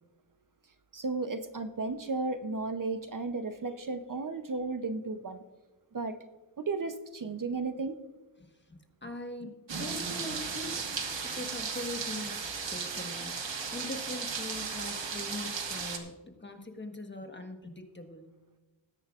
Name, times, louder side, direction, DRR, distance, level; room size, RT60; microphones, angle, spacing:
voice 1, 0.9-5.4 5.9-6.2 6.6-8.0, right 3 dB, 45° right, 9 dB, 0.7 m, -34 dB
voice 2, 8.4-9.5 9.8-18.3, left 1 dB, 25° left, 5 dB, 1.3 m, -42 dB
sound 1, 9.7-16.0, right 5 dB, 75° right, 1.5 m, -36 dB
20.0 x 10.0 x 2.4 m, 1.2 s
wide cardioid pair, 115°, 45 cm